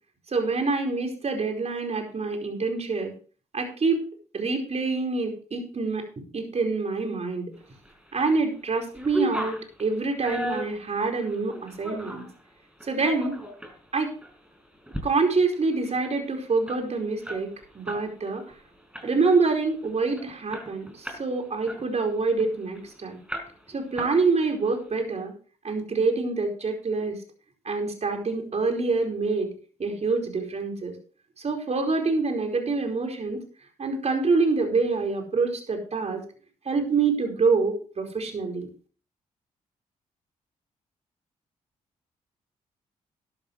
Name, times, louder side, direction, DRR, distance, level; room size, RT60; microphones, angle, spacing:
voice 1, 0.3-3.1 3.5-4.0 4.3-6.1 6.3-7.5 8.1-12.2 12.8-13.4 13.9-14.1 15.0-17.5 17.7-18.4 19.0-23.2 23.7-25.3 25.6-27.2 27.6-29.5 29.8-30.9 31.4-33.4 33.8-36.2 36.6-38.7, right 4 dB, 50° right, 3 dB, 4.7 m, -26 dB
sound 1, 7.8-8.4 8.7-12.3 12.8-13.8 14.2-14.3 14.7-15.1 15.4-15.5 15.7-18.1 18.4-18.6 18.9-19.4 19.8-19.9 20.2-21.3 21.7-22.8 23.3-23.7 24.0-24.6, equal, 5° right, 4.8 m, -35 dB
12.5 x 12.5 x 3.2 m, 0.39 s
supercardioid pair, 50°, 15 cm